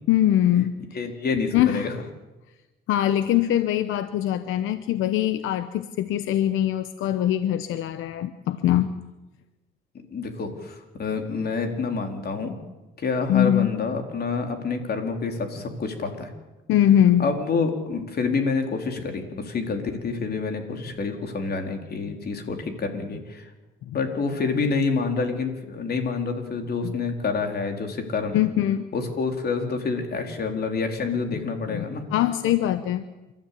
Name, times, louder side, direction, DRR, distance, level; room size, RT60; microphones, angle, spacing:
voice 1, 0.1-0.7 1.5-1.9 2.9-8.9 13.3-13.7 16.7-17.2 23.9-24.0 26.8-26.9 28.3-28.8 31.7-31.8 32.1-33.0, left 11 dB, 85° left, 11 dB, 0.9 m, -22 dB
voice 2, 0.9-1.9 10.1-12.6 13.0-16.3 17.2-23.5 23.9-28.4 28.9-32.0, left 4 dB, 50° left, 4 dB, 4.0 m, -27 dB
28.5 x 13.0 x 8.5 m, 1.1 s
cardioid pair, 90°, 20 cm